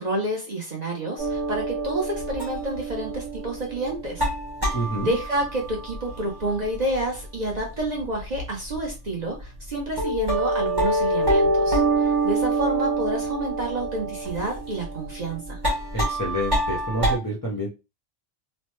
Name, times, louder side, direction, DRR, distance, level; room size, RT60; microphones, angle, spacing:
voice 1, 0.0-4.3 5.0-15.6, right 1 dB, 40° right, -1 dB, 0.6 m, -29 dB
sound 1, 1.2-7.2 7.5-8.5 8.7-8.9 9.4-9.5 10.0-17.2, right 2 dB, 20° right, 1.0 m, -26 dB
voice 2, 4.7-5.2 15.9-17.7, equal, 30° left, -3 dB, 0.4 m, -28 dB
3.1 x 2.1 x 3.0 m, 0.28 s
omnidirectional pair, 1.4 m